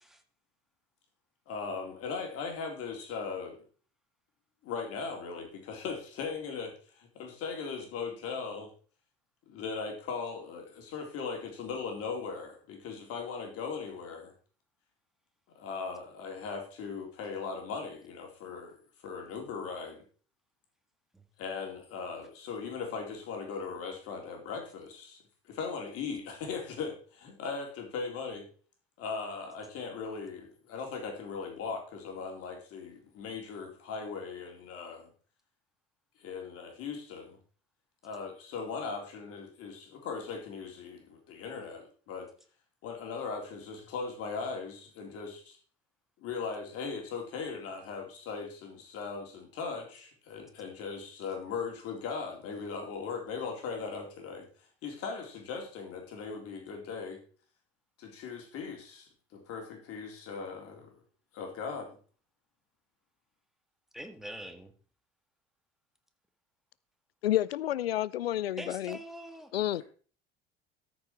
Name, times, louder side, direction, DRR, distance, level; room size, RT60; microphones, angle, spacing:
voice 1, 1.5-3.6 4.6-8.7 9.5-14.3 15.6-18.8 19.0-20.0 21.4-25.2 25.5-28.4 29.0-35.1 36.2-37.4 38.0-42.3 42.8-45.6 46.2-54.5 54.8-57.2 58.0-61.0 61.3-61.9, left 5 dB, 50° left, 3.7 m, -39 dB
voice 2, 63.9-64.7 68.6-69.5, equal, ahead, 1.9 m, -43 dB
voice 3, 67.2-69.0 69.5-69.8, left 13 dB, 80° left, 0.5 m, -30 dB
13.5 x 6.2 x 4.5 m
figure-of-eight pair, 65°, 30 cm